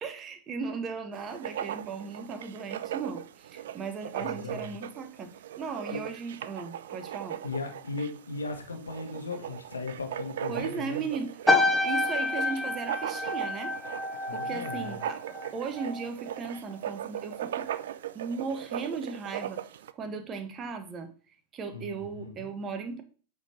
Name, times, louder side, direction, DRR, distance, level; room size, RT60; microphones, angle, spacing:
voice 1, 0.0-5.3 5.6-7.4 10.5-13.7 14.3-17.7 18.1-19.7 19.9-21.1 21.5-23.0, right 5 dB, 30° right, 1.1 m, -37 dB
Writing, 1.1-19.9, right 11 dB, 60° right, 0.4 m, -39 dB
voice 2, 4.2-4.7 5.9-6.0 7.4-11.1 14.3-15.0 21.7-22.5, left 3 dB, 75° left, 1.5 m, -37 dB
sound 1, 11.5-16.1 16.4-16.8, left 2 dB, 5° left, 0.8 m, -28 dB
8.5 x 4.1 x 4.2 m
figure-of-eight pair, 90°, 0 cm